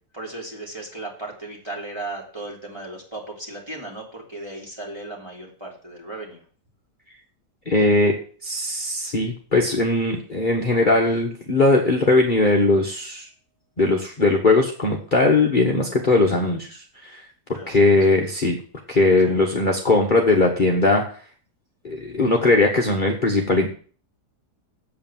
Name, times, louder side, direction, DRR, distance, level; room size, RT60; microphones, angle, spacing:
voice 1, 0.1-6.4 17.5-17.9 19.3-19.4, right 2 dB, 15° right, -2 dB, 3.3 m, -36 dB
voice 2, 7.6-8.1 8.4-13.3 13.8-17.2 17.7-18.6 18.9-21.0 21.8-23.7, left 2 dB, 30° left, -1 dB, 1.5 m, -19 dB
8.6 x 7.9 x 7.3 m, 0.43 s
omnidirectional pair, 1.8 m